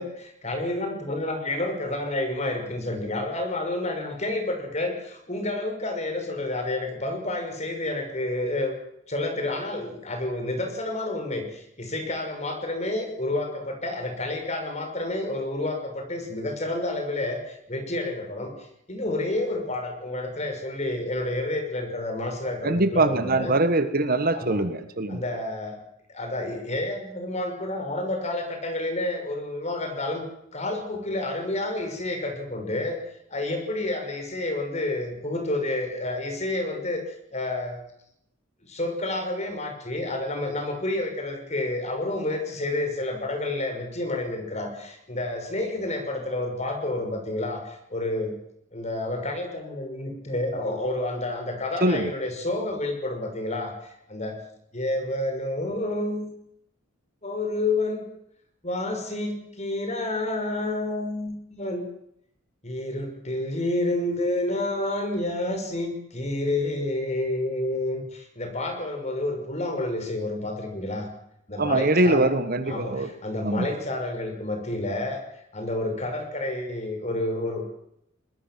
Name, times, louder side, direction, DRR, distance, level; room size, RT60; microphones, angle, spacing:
voice 1, 0.0-8.8 9.1-23.6 24.3-24.6 25.1-25.8 26.1-33.0 33.3-37.0 37.3-37.8 38.6-48.3 48.7-53.7 54.1-54.4 54.7-56.3 57.2-58.0 58.6-61.9 62.6-71.1 71.5-72.3 72.7-75.2 75.5-77.6, left 2 dB, 35° left, 5 dB, 5.6 m, -29 dB
voice 2, 22.6-25.2 51.8-52.1 71.6-73.1 73.4-73.7, right 2 dB, 45° right, 11 dB, 1.6 m, -23 dB
22.5 x 20.0 x 7.6 m, 0.76 s
head